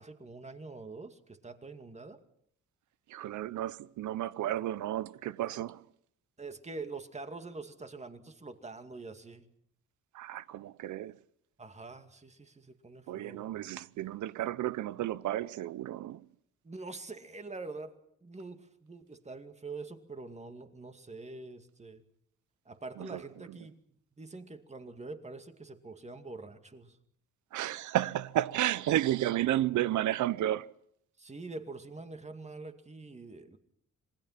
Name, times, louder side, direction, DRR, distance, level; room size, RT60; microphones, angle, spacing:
voice 1, 0.0-2.2 6.4-9.5 11.6-13.8 16.6-17.9 18.2-22.0 22.7-23.8 24.2-27.0 31.2-33.6, right 3 dB, 20° right, 2.4 m, -45 dB
voice 2, 3.1-5.9 10.1-11.2 13.1-16.3 23.0-23.2 27.5-30.7, right 13 dB, 75° right, 0.8 m, -32 dB
27.0 x 20.0 x 5.9 m
cardioid pair, 90°, 30 cm